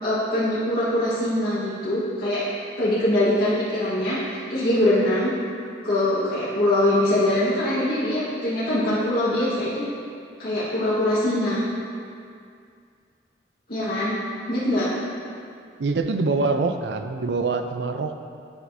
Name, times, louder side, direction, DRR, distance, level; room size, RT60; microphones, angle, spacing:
voice 1, 0.0-2.4 2.8-4.2 4.5-5.3 5.8-9.8 10.4-11.6 13.7-14.1 14.5-14.9, left 1 dB, 60° left, -11 dB, 1.6 m, -23 dB
voice 2, 15.8-18.1, right 3 dB, 75° right, 7 dB, 0.5 m, -24 dB
10.5 x 5.9 x 2.7 m, 2.3 s
head